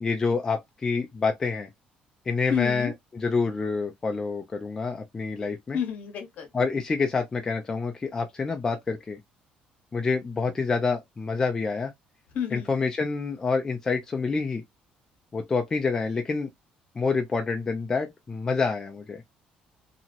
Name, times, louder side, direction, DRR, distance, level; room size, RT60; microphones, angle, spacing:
voice 1, 0.0-1.7 2.3-5.8 6.5-9.2 9.9-11.9 12.5-14.6 15.3-16.5 17.0-19.2, left 4 dB, 20° left, 0.5 m, -27 dB
voice 2, 2.5-2.9 5.7-6.5 12.3-12.7, left 7 dB, 55° left, 1.0 m, -30 dB
2.9 x 2.8 x 2.5 m
cardioid pair, 160°, 3 cm